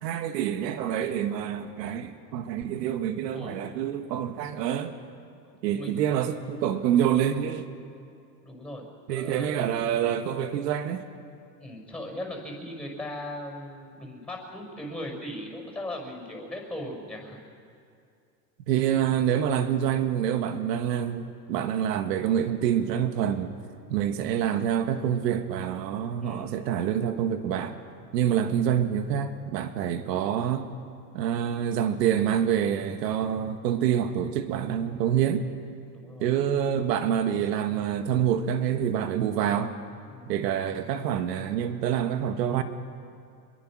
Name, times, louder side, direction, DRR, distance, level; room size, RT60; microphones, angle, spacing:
voice 1, 0.0-4.9 5.6-7.7 9.1-11.0 18.7-23.5 23.9-27.8 28.1-30.7 31.1-35.5 36.2-39.7 40.3-42.6, right 9 dB, 80° right, 8 dB, 1.7 m, -27 dB
voice 2, 3.3-3.7 5.7-6.0 8.4-9.6 11.6-17.4 26.2-26.5 35.9-36.3 40.1-40.3, left 1 dB, 5° left, 1 dB, 5.6 m, -38 dB
26.0 x 22.5 x 6.2 m, 2.4 s
supercardioid pair, 135°, 49 cm